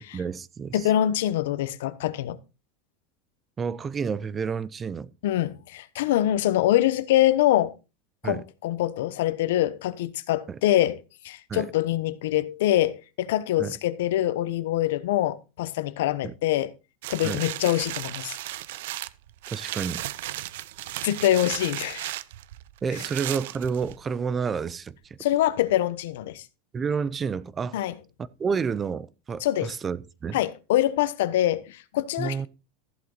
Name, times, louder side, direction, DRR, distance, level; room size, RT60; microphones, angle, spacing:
voice 1, 0.0-0.9 3.6-5.1 8.2-8.4 10.5-10.6 11.5-11.7 13.6-13.7 16.2-16.3 17.2-17.4 19.5-20.0 20.3-20.5 22.8-25.0 26.7-27.8 28.2-30.4 32.2-32.5, right 6 dB, 15° right, 0.4 m, -30 dB
voice 2, 0.7-2.4 5.2-7.7 8.2-11.0 11.2-16.7 17.1-18.4 21.0-22.1 25.2-26.4 27.7-27.9 29.4-29.7 30.3-32.5, left 13 dB, 70° left, 1.0 m, -24 dB
sound 1, 17.0-24.2 24.7-24.8, right 15 dB, 65° right, 0.6 m, -35 dB
14.0 x 7.9 x 4.0 m
supercardioid pair, 180°, 0 cm